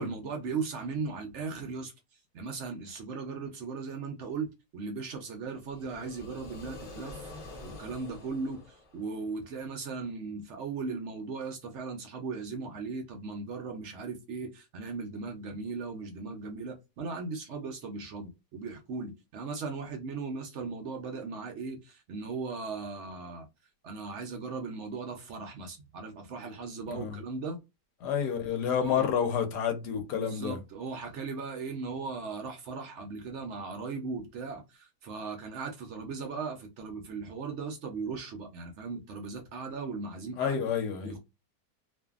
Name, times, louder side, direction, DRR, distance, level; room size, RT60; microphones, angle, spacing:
voice 1, 0.0-1.9 2.3-7.2 7.6-23.5 23.8-27.6 28.8-29.1 30.1-40.6 41.0-41.2, right 4 dB, 70° right, 0.6 m, -38 dB
sound 1, 5.5-9.5, left 2 dB, 40° left, 0.7 m, -47 dB
voice 2, 26.9-27.2 28.0-30.6 40.4-41.2, left 7 dB, 80° left, 1.2 m, -29 dB
2.6 x 2.5 x 2.3 m
omnidirectional pair, 1.8 m